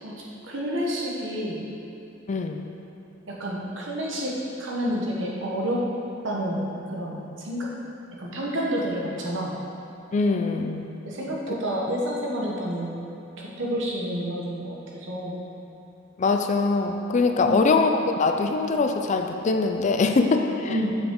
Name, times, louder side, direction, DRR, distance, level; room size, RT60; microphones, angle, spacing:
voice 1, 0.0-1.6 3.3-5.9 6.2-7.7 8.2-9.6 11.0-13.1 13.4-15.4 17.4-17.6 20.7-21.0, equal, 75° right, -3 dB, 1.3 m, -29 dB
voice 2, 2.3-2.7 10.1-10.9 16.2-20.8, left 3 dB, 35° left, 5 dB, 0.4 m, -23 dB
7.2 x 5.8 x 3.8 m, 2.9 s
head